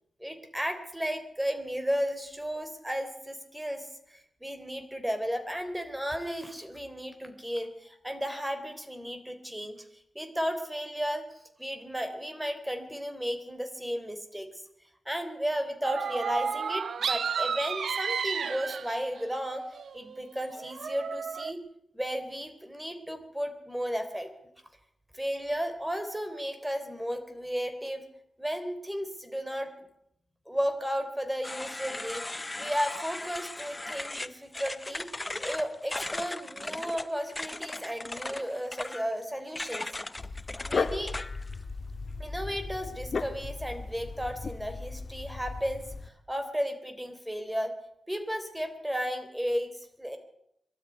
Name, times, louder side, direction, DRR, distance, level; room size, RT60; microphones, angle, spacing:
voice 1, 0.2-9.8 10.2-11.2 11.6-14.5 15.1-19.6 19.9-21.6 21.9-24.3 25.1-28.0 28.4-29.7 30.5-32.3 32.6-35.1 35.4-39.9 40.7-41.1 42.2-47.7 48.1-50.2, equal, 5° right, 7 dB, 3.5 m, -34 dB
sound 1, 15.8-19.2 19.7-21.5, right 6 dB, 85° right, 1.0 m, -32 dB
sound 2, 31.4-41.6, left 2 dB, 20° left, 0.8 m, -38 dB
Dog, 40.2-46.1, left 4 dB, 55° left, 1.5 m, -36 dB
23.0 x 13.0 x 9.5 m, 0.78 s
wide cardioid pair, 95°, 0 cm